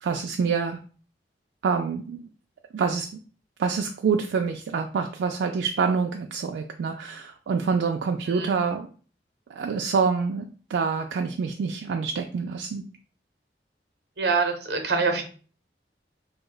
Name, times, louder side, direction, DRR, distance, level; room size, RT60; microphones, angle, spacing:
voice 1, 0.0-0.8 1.6-2.3 2.7-3.2 3.6-8.9 9.5-10.4 10.7-12.8, right 5 dB, 85° right, 3 dB, 0.3 m, -26 dB
voice 2, 14.2-15.2, right 4 dB, 70° right, 5 dB, 0.7 m, -25 dB
2.8 x 2.1 x 3.8 m, 0.40 s
head